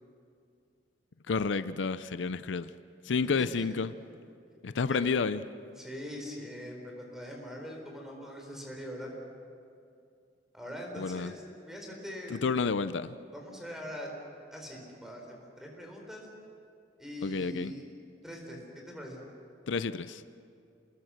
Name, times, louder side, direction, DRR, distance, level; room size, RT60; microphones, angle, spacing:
voice 1, 1.3-2.7 3.0-3.9 4.6-5.4 11.0-11.3 12.3-13.1 17.2-17.7 19.7-20.2, left 5 dB, 80° left, 13 dB, 0.6 m, -30 dB
voice 2, 3.4-3.7 4.9-5.2 5.8-9.1 10.5-12.4 13.3-14.1 14.5-16.3 17.0-17.8 18.2-18.6 18.9-19.2, equal, 5° right, 0 dB, 4.7 m, -42 dB
28.0 x 20.5 x 6.6 m, 2.5 s
head